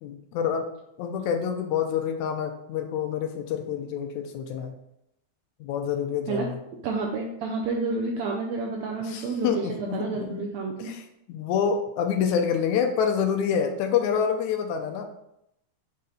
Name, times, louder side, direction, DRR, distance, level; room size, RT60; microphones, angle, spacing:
voice 1, 0.0-0.7 1.0-4.7 5.6-6.6 9.0-10.5 10.8-15.0, left 7 dB, 85° left, 4 dB, 2.0 m, -27 dB
voice 2, 6.8-10.9, right 4 dB, 75° right, 0 dB, 1.9 m, -30 dB
7.5 x 4.2 x 3.9 m, 0.81 s
omnidirectional pair, 3.4 m